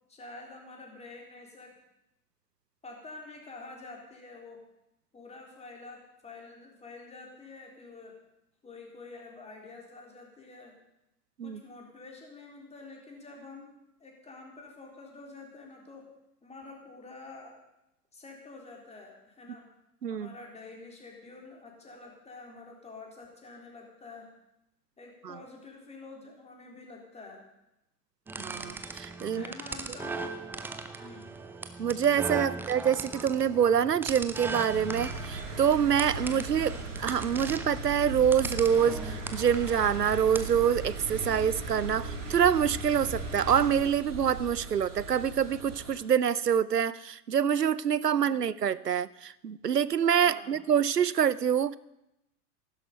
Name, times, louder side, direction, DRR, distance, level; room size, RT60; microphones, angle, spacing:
voice 1, 0.1-1.7 2.8-4.6 5.1-8.2 8.6-10.8 11.4-13.7 14.0-16.1 16.4-17.6 18.1-19.7 20.1-24.3 25.0-27.4 29.3-30.3 31.0-31.4 32.5-32.7 36.3-36.6 48.1-48.5 50.2-50.6, left 3 dB, 15° left, 0 dB, 3.5 m, -48 dB
sound 1, 28.3-40.6, right 3 dB, 5° right, 0.4 m, -39 dB
voice 2, 28.4-29.4 31.8-51.8, right 8 dB, 90° right, 20 dB, 0.6 m, -26 dB
sound 2, 34.7-46.0, right 2 dB, 55° right, 4.2 m, -38 dB
15.0 x 12.0 x 5.3 m, 0.88 s
figure-of-eight pair, 90°, 46 cm